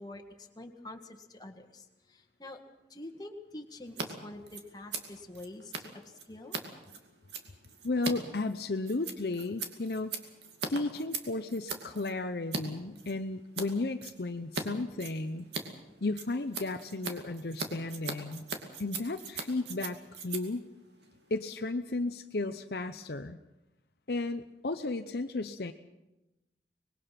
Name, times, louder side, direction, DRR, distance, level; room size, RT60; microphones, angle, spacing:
voice 1, 0.0-2.6 2.9-6.6, left 1 dB, 20° left, 5 dB, 1.8 m, -46 dB
Scissors, 3.8-4.1 4.3-12.6 12.9-13.7 14.0-14.6 14.9-21.7, right 4 dB, 70° right, 2.5 m, -40 dB
voice 2, 7.8-10.1 10.7-15.5 16.0-18.5 18.8-20.6 21.3-23.4 24.1-25.7, left 2 dB, 60° left, 8 dB, 0.7 m, -34 dB
25.5 x 20.5 x 5.9 m, 1.0 s
head